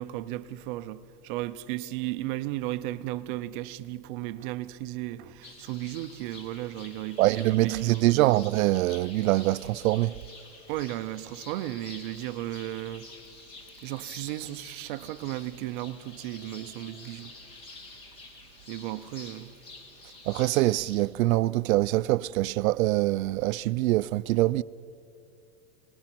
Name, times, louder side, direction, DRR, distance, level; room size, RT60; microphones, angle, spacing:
voice 1, 0.0-8.2 10.7-13.1 13.8-17.3 18.7-19.5, right 15 dB, 40° right, 0.6 m, -35 dB
sound 1, 5.4-21.0, left 3 dB, 35° left, 2.7 m, -49 dB
voice 2, 7.2-10.1 20.3-24.6, right 17 dB, 90° right, 0.5 m, -24 dB
28.5 x 19.0 x 6.0 m
supercardioid pair, 160°, 41 cm